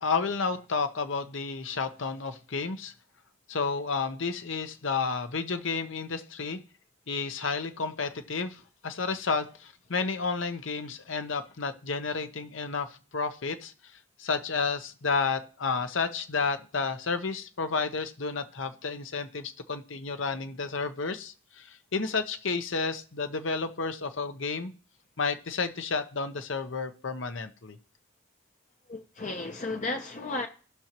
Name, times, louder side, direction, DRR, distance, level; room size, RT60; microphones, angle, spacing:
voice 1, 0.0-2.9 3.5-6.6 7.1-13.7 14.2-24.7 25.2-27.8, left 4 dB, 70° left, 0.8 m, -31 dB
voice 2, 28.9-30.5, left 2 dB, 35° left, 0.6 m, -33 dB
18.0 x 6.1 x 2.9 m
head